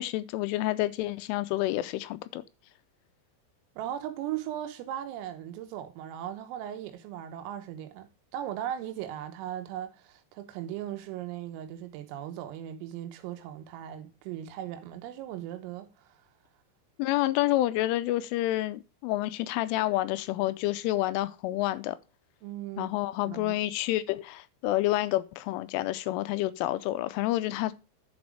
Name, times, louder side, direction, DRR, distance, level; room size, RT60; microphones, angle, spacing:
voice 1, 0.0-2.4 17.0-22.0 22.8-27.7, left 16 dB, 85° left, 3.0 m, -29 dB
voice 2, 3.8-16.2 22.4-22.9 23.3-23.6, right 11 dB, 90° right, 3.7 m, -38 dB
10.5 x 5.2 x 4.9 m
omnidirectional pair, 5.9 m